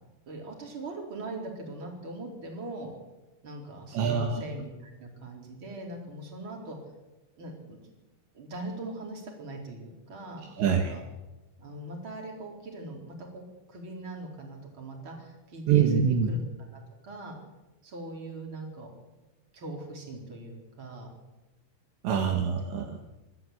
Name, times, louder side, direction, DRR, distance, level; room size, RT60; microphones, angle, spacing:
voice 1, 0.3-2.9 3.4-6.8 7.4-7.8 8.3-11.0 11.6-13.4 13.7-16.4 16.7-17.3 17.8-18.9 19.5-21.1 22.1-22.5, right 2 dB, 25° right, 1 dB, 4.3 m, -41 dB
voice 2, 3.9-4.4 10.6-10.9 15.7-16.3 22.0-23.0, right 7 dB, 70° right, 2 dB, 3.4 m, -25 dB
26.0 x 13.0 x 8.7 m, 1.1 s
omnidirectional pair, 5.8 m